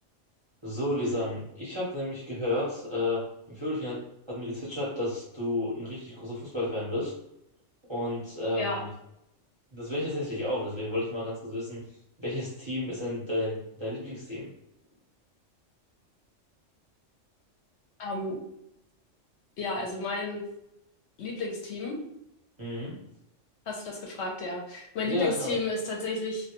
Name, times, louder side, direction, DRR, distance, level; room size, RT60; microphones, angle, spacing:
voice 1, 0.6-7.1 7.9-8.9 9.7-11.8 12.2-14.5 22.6-23.0 25.0-25.5, left 1 dB, 35° right, -7 dB, 0.5 m, -32 dB
voice 2, 18.0-18.4 19.6-20.4 21.2-22.0 23.7-26.5, left 2 dB, 70° left, -1 dB, 0.8 m, -32 dB
2.2 x 2.2 x 2.8 m, 0.79 s
omnidirectional pair, 1.3 m